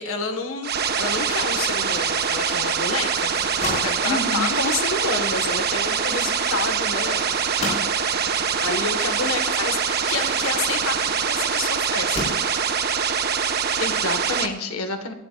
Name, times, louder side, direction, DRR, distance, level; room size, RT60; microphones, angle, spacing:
voice 1, 0.0-8.2 8.6-12.7, left 3 dB, 65° left, 5 dB, 1.6 m, -29 dB
sound 1, 0.6-14.5, right 6 dB, 45° right, 1.3 m, -24 dB
sound 2, 3.1-11.2 11.9-12.9, left 1 dB, 30° left, 5.8 m, -35 dB
voice 2, 4.0-4.6 13.8-15.1, left 2 dB, 90° left, 6 dB, 1.7 m, -28 dB
26.5 x 12.5 x 2.5 m, 0.94 s
head